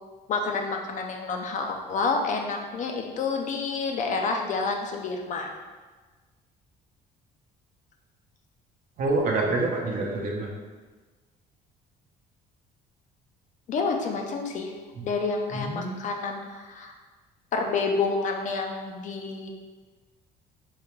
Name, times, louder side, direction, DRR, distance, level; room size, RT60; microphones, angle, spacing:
voice 1, 0.3-5.5 13.7-14.7 15.0-16.9 17.5-19.5, left 4 dB, 45° left, 3 dB, 0.4 m, -29 dB
voice 2, 9.0-10.5 15.0-15.1 15.5-16.0, right 2 dB, 55° right, -1 dB, 0.7 m, -27 dB
3.7 x 2.1 x 3.0 m, 1.3 s
cardioid pair, 110°, 17 cm